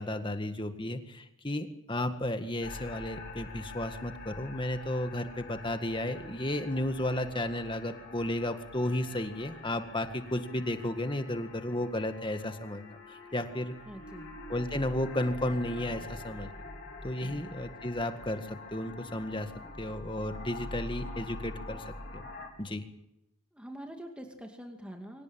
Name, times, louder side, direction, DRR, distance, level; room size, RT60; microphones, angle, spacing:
voice 1, 0.0-13.7 14.5-16.5 17.0-19.5 19.8-22.3 22.6-22.8, left 1 dB, 20° left, 8 dB, 1.8 m, -33 dB
sound 1, 2.6-22.5, left 2 dB, 45° left, 4.5 m, -45 dB
voice 2, 13.9-14.3 17.2-17.5 23.5-25.2, equal, 5° right, 3 dB, 2.3 m, -45 dB
24.5 x 18.0 x 9.0 m, 0.86 s
head